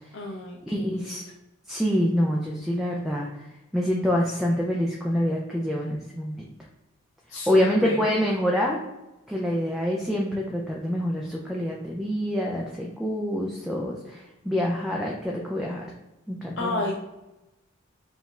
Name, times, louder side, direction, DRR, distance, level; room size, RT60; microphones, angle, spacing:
voice 1, 0.1-1.2 7.3-8.0 16.6-17.0, left 2 dB, 60° left, -1 dB, 0.6 m, -31 dB
voice 2, 0.7-1.2 1.7-3.3 3.7-6.5 7.5-8.8 9.3-15.9 16.3-16.8, equal, ahead, -2 dB, 0.4 m, -26 dB
5.0 x 2.4 x 3.2 m, 0.99 s
head